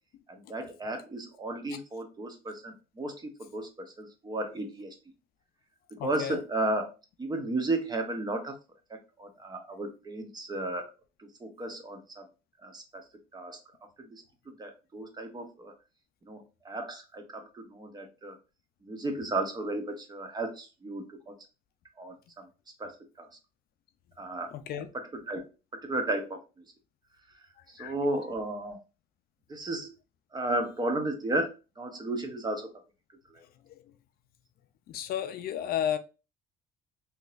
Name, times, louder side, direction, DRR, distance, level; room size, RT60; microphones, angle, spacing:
voice 1, 0.3-4.9 6.0-6.9 7.2-8.5 9.2-10.9 11.2-12.3 12.6-13.0 13.3-13.6 14.0-15.7 16.3-18.4 18.8-21.3 22.0-22.5 22.8-23.3 24.2-24.5 24.9-25.4 25.7-26.4 27.7-28.8 29.5-29.9 30.3-32.7 33.3-33.4, right 2 dB, 25° right, 0.9 m, -34 dB
voice 2, 6.0-6.4 24.5-24.9 27.8-27.9 33.7-33.8 34.9-36.0, left 10 dB, 65° left, 0.4 m, -32 dB
3.8 x 2.8 x 2.5 m
cardioid pair, 110°, 17 cm